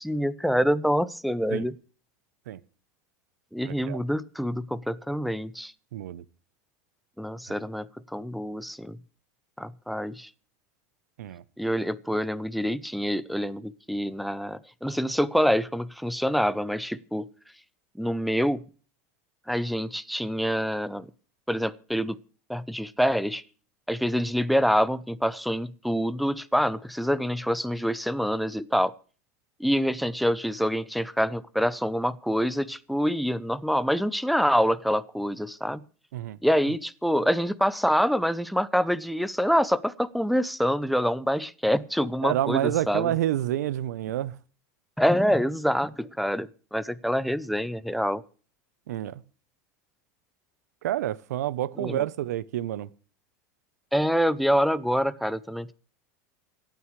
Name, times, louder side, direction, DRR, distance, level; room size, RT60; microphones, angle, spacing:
voice 1, 0.0-1.8 3.5-5.7 7.2-9.0 9.6-10.3 11.6-17.2 17.9-18.6 19.5-21.1 21.5-22.2 22.5-23.4 23.9-28.9 29.6-35.8 36.4-43.1 45.0-48.2 51.8-52.1 53.9-55.7, equal, ahead, 0.7 m, -26 dB
voice 2, 3.6-4.0 5.9-6.2 11.2-11.4 36.1-36.4 42.2-44.3 48.9-49.2 50.8-52.9, right 13 dB, 85° right, 0.8 m, -28 dB
26.5 x 9.3 x 3.2 m
supercardioid pair, 130°, 9 cm